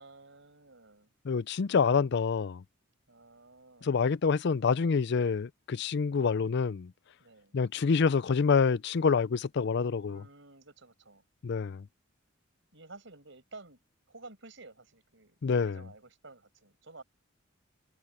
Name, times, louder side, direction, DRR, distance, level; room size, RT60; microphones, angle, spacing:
voice 1, 0.0-1.1 3.1-4.0 7.2-7.6 10.1-11.3 12.7-13.8 14.1-17.0, right 3 dB, 65° right, 6.9 m, -52 dB
voice 2, 1.3-2.6 3.8-6.9 7.5-10.2 11.4-11.8 15.4-15.8, left 5 dB, 55° left, 0.4 m, -27 dB
head